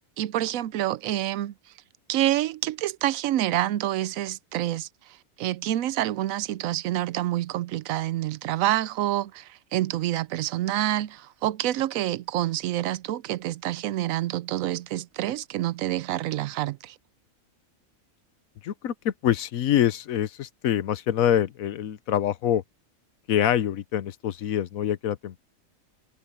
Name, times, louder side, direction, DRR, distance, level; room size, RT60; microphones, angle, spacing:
voice 1, 0.2-1.5 2.1-4.9 5.4-16.9, right 13 dB, 80° right, 1.0 m, -27 dB
voice 2, 18.6-22.6 23.3-25.4, left 10 dB, 90° left, 1.2 m, -25 dB
omnidirectional pair, 1.4 m